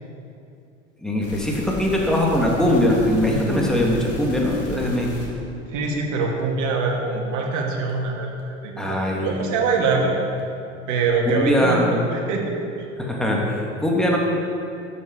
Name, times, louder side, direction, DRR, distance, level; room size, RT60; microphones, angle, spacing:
voice 1, 1.0-5.1 8.8-9.5 9.9-10.0 11.3-12.0 13.0-14.2, left 1 dB, ahead, -2 dB, 3.0 m, -21 dB
sound 1, 1.2-5.4 5.9-6.0 6.4-6.5 6.9-7.0 7.4-7.5 7.9-8.0 8.4-8.5 8.9-9.0 9.4-9.5 9.9-10.0 10.4-10.5 10.9-11.0 11.4-11.5, left 1 dB, 40° left, 3.6 m, -35 dB
voice 2, 5.7-10.2 10.9-11.8 12.1-12.5, right 4 dB, 50° right, 0 dB, 2.7 m, -24 dB
12.5 x 7.7 x 7.8 m, 2.6 s
hypercardioid pair, 75°, 37 cm